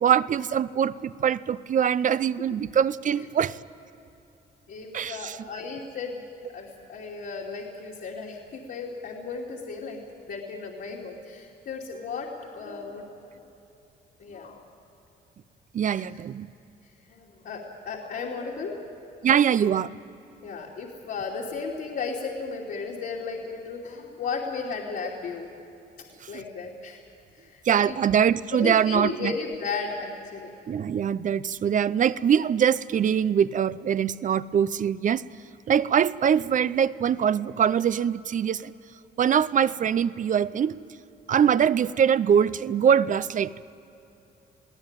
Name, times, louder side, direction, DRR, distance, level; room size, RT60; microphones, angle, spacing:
voice 1, 0.0-3.6 4.9-5.4 15.7-16.5 19.2-19.9 27.6-29.3 30.7-35.2 35.7-38.7 39.2-40.8 41.3-43.6, right 8 dB, 45° right, 16 dB, 0.6 m, -23 dB
voice 2, 4.7-6.2 6.5-10.0 10.3-13.4 14.2-14.6 15.9-16.2 17.1-18.8 20.4-25.5 26.3-27.0 27.3-28.0 28.5-30.5, left 4 dB, 65° left, -4 dB, 2.9 m, -35 dB
22.5 x 16.5 x 9.0 m, 2.9 s
cardioid pair, 115°, 18 cm